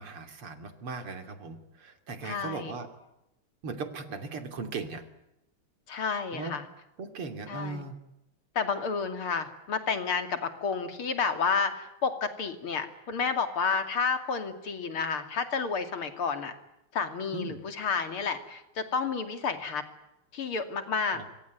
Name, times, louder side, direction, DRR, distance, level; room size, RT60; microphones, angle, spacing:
voice 1, 0.0-2.9 3.6-5.0 6.3-6.5 7.0-8.0 17.3-17.6 21.1-21.2, right 4 dB, 80° right, 8 dB, 3.8 m, -38 dB
voice 2, 2.2-2.8 5.9-6.7 7.5-7.8 8.6-16.5 16.9-19.8 20.3-21.2, left 5 dB, 75° left, 8 dB, 3.4 m, -30 dB
25.5 x 24.0 x 9.4 m, 0.86 s
omnidirectional pair, 2.4 m